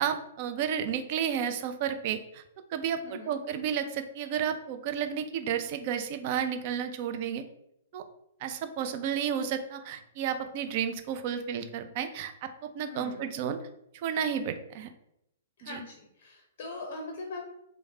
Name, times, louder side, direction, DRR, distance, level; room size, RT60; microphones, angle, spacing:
voice 1, 0.0-2.4 2.7-7.4 7.9-8.0 8.4-13.6 13.9-14.9 15.6-15.8, right 8 dB, 45° right, 8 dB, 0.3 m, -32 dB
voice 2, 3.0-3.4 12.8-13.3 15.6-17.4, left 3 dB, 50° left, 1 dB, 0.5 m, -41 dB
3.1 x 2.1 x 2.7 m, 0.79 s
figure-of-eight pair, 115°, 0 cm